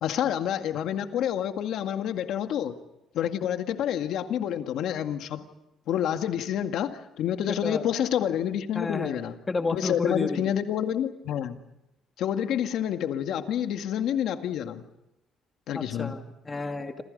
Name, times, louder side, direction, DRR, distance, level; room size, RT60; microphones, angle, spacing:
voice 1, 0.0-2.8 3.1-5.4 5.9-9.4 9.7-11.6 12.2-14.9 15.7-16.2, left 10 dB, 70° left, 7 dB, 1.9 m, -28 dB
voice 2, 7.5-7.8 8.7-9.2 9.5-10.5 15.7-17.0, left 3 dB, 20° left, 5 dB, 2.4 m, -31 dB
28.5 x 27.0 x 5.4 m, 0.90 s
cardioid pair, 140°, 0 cm